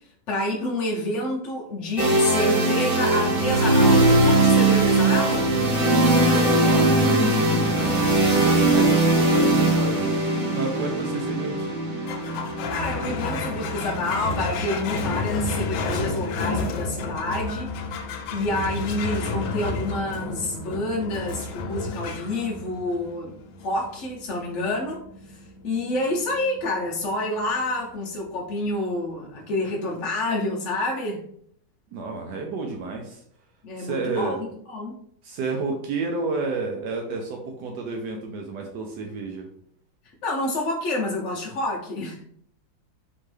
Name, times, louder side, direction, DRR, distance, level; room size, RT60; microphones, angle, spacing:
voice 1, 0.3-5.5 10.9-11.2 12.7-17.7 18.3-23.3 23.6-25.0 25.3-31.2 33.6-35.0 40.2-42.2, left 1 dB, 65° left, -3 dB, 0.7 m, -28 dB
sound 1, 2.0-15.8, right 2 dB, 55° right, 0.6 m, -21 dB
voice 2, 5.5-11.7 31.9-33.2 33.8-34.4 35.2-39.5, right 3 dB, 75° right, 2 dB, 1.1 m, -31 dB
sound 2, 12.1-28.8, left 3 dB, 90° left, 1.4 m, -32 dB
4.4 x 3.0 x 3.1 m, 0.66 s
omnidirectional pair, 2.0 m